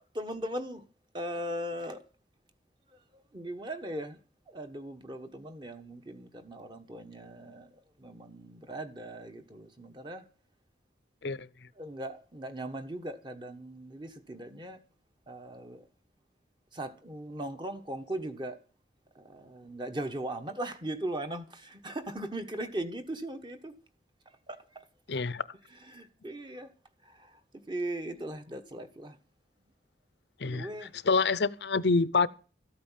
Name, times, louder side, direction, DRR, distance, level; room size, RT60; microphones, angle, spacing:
voice 1, 0.1-0.8 1.1-2.0 3.1-4.2 4.5-7.7 8.0-10.2 11.2-11.3 11.8-14.8 15.3-15.9 16.7-18.6 19.1-23.7 24.5-24.9 25.7-26.7 27.0-27.4 27.7-29.2 30.4-30.9 31.8-31.9, right 1 dB, 25° right, 1.2 m, -39 dB
voice 2, 25.1-25.4 30.4-30.7 31.0-32.3, left 4 dB, 70° left, 0.7 m, -26 dB
13.5 x 8.7 x 7.4 m
head